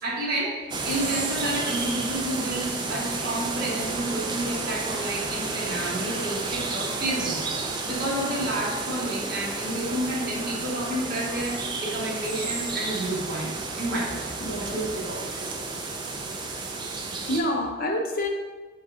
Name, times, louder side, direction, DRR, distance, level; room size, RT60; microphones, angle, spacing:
voice 1, 0.0-7.4 7.9-15.6, right 1 dB, 50° right, -4 dB, 1.0 m, -30 dB
sound 1, 0.7-17.4, right 3 dB, 25° right, 0.3 m, -31 dB
voice 2, 14.4-14.9 17.3-18.3, left 1 dB, 50° left, 2 dB, 0.5 m, -27 dB
3.9 x 3.2 x 3.6 m, 1.3 s
head